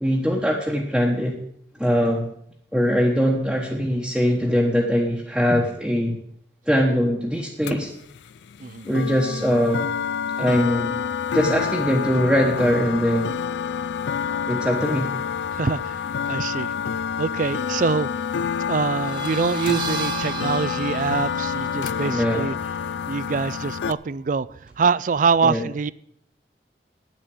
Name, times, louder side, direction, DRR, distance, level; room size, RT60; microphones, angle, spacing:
voice 1, 0.0-1.4 1.8-2.3 2.7-6.2 6.7-7.9 8.9-9.8 10.4-10.9 11.3-13.3 14.5-15.1 22.0-22.5 25.4-25.6, equal, 5° right, 1.2 m, -21 dB
sound 1, 7.6-23.9, left 7 dB, 80° left, 0.4 m, -28 dB
voice 2, 15.6-15.9 16.3-16.7 17.2-18.1 18.7-22.5 23.1-24.5 24.8-25.9, right 5 dB, 45° right, 0.4 m, -24 dB
sound 2, 18.9-24.3, right 4 dB, 30° right, 1.4 m, -36 dB
10.0 x 8.0 x 7.7 m
head